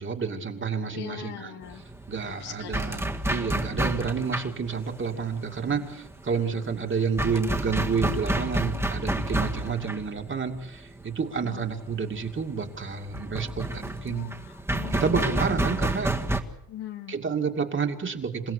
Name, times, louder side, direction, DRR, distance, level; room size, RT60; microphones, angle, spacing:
voice 1, 0.0-1.6 2.1-14.3 14.9-16.1 17.1-18.5, right 5 dB, 30° right, 4 dB, 2.5 m, -29 dB
voice 2, 0.9-1.8 2.2-3.0 5.6-5.8 11.4-11.6 14.1-15.7 16.7-17.2, left 11 dB, 85° left, 5 dB, 2.8 m, -41 dB
sound 1, 1.6-16.4, right 1 dB, 5° right, 1.8 m, -30 dB
28.0 x 17.0 x 8.3 m, 0.79 s
cardioid pair, 140°, 38 cm